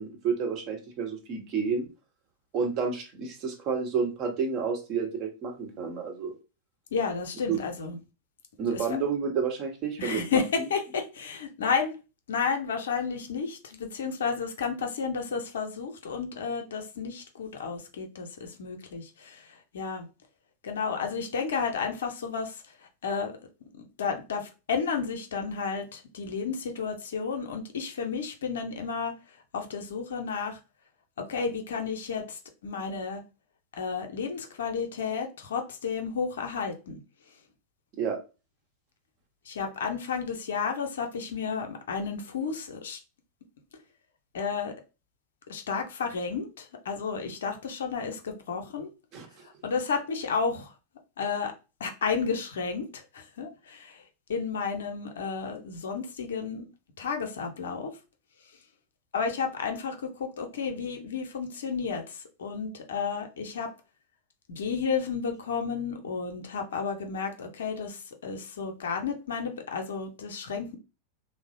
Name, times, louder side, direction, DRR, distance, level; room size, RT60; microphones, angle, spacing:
voice 1, 0.0-1.9 2.5-6.3 7.5-7.6 8.6-10.7 38.0-38.2 49.1-49.3, right 5 dB, 40° right, 0.9 m, -30 dB
voice 2, 6.9-8.0 8.7-8.8 10.0-11.9 12.3-20.1 20.6-22.6 23.0-23.4 23.7-29.1 29.5-30.6 31.2-33.2 33.8-37.0 39.5-43.0 44.3-44.7 45.5-48.9 49.4-50.7 51.2-51.5 51.8-54.0 54.3-56.7 57.0-57.9 59.1-63.7 64.5-70.8, left 5 dB, 65° left, 0.6 m, -32 dB
3.1 x 2.0 x 2.6 m
figure-of-eight pair, 90°, 0 cm